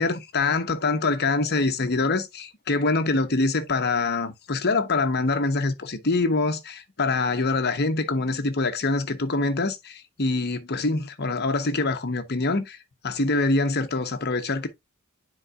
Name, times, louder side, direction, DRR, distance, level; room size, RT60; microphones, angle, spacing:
voice 1, 0.0-12.8 13.0-14.7, left 3 dB, 50° left, 1.0 m, -25 dB
9.8 x 4.7 x 2.5 m
head